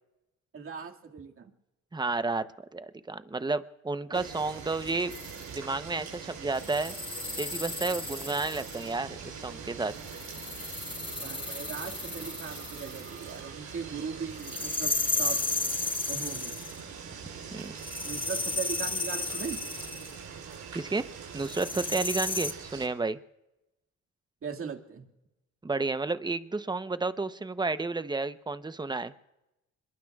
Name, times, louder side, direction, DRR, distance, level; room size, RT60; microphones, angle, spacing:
voice 1, 0.5-1.5 4.1-4.3 11.2-15.4 16.1-16.5 18.1-19.6 24.4-25.0, right 6 dB, 45° right, 2 dB, 2.1 m, -39 dB
voice 2, 1.9-2.4 2.7-5.1 5.5-6.9 7.4-9.9 17.5-17.7 20.7-21.0 21.3-23.2 25.6-29.1, right 3 dB, 15° right, 12 dB, 0.8 m, -31 dB
sound 1, 4.1-22.9, right 6 dB, 75° right, 7.1 m, -43 dB
sound 2, 5.1-5.4 6.6-8.9 10.0-13.2 14.4-16.8 17.8-20.1 21.4-22.5, left 3 dB, 15° left, 1.3 m, -34 dB
26.0 x 22.0 x 2.4 m, 0.94 s
cardioid pair, 90°, 30 cm